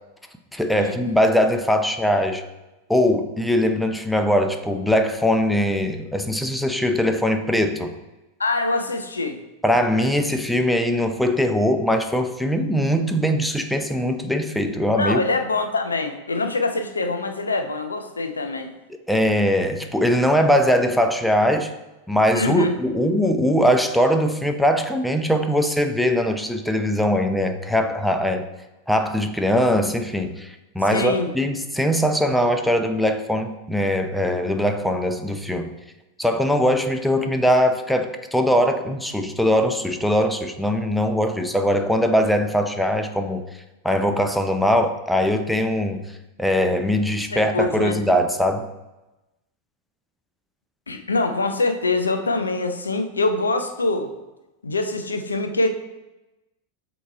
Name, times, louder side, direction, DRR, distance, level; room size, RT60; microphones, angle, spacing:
voice 1, 0.5-2.4 2.9-7.9 9.6-15.2 19.1-21.7 22.1-28.5 28.9-35.8 36.2-43.4 43.8-46.0 46.4-48.7, equal, ahead, 6 dB, 0.5 m, -21 dB
voice 2, 8.4-9.4 15.0-18.7 22.3-22.8 30.9-31.3 47.3-48.0 50.9-54.1 54.6-55.7, left 3 dB, 75° left, 6 dB, 0.6 m, -24 dB
8.0 x 3.1 x 4.5 m, 1.0 s
figure-of-eight pair, 90°, 0 cm